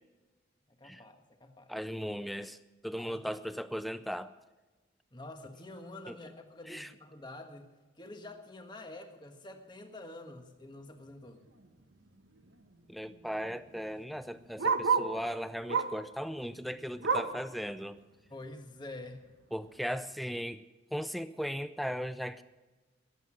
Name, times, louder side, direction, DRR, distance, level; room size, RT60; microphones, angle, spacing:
voice 1, 0.7-1.7 3.0-3.3 5.1-7.7 8.0-11.4 18.3-19.2 21.4-21.5, left 2 dB, 25° left, 5 dB, 1.5 m, -47 dB
voice 2, 1.7-2.6 2.8-4.3 6.1-6.2 6.7-6.9 12.9-18.0 19.5-20.6 20.9-22.4, equal, ahead, 12 dB, 0.5 m, -37 dB
Bark, 11.5-11.7 12.1-12.2 12.4-15.2 15.7-16.1 16.5-17.5 17.9-18.0 18.4-18.5 19.2-19.3, right 5 dB, 90° right, 1.3 m, -32 dB
21.0 x 8.1 x 6.3 m, 1.2 s
head